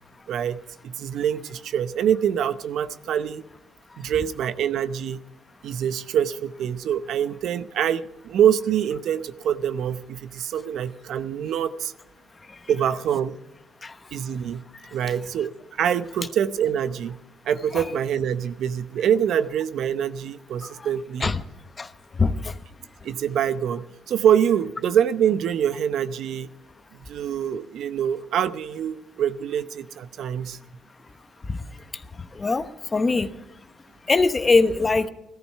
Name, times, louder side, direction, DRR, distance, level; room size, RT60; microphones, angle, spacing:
voice 1, 0.3-3.4 4.0-5.2 5.6-11.9 12.7-13.3 14.1-14.6 14.9-15.5 15.8-17.2 17.5-21.3 23.0-26.5 27.0-30.6, right 9 dB, 75° right, 13 dB, 0.7 m, -25 dB
voice 2, 22.2-22.5 32.3-33.3 34.1-35.1, left 3 dB, 30° left, 11 dB, 1.0 m, -22 dB
15.5 x 13.5 x 5.6 m, 0.93 s
cardioid pair, 90°, 0 cm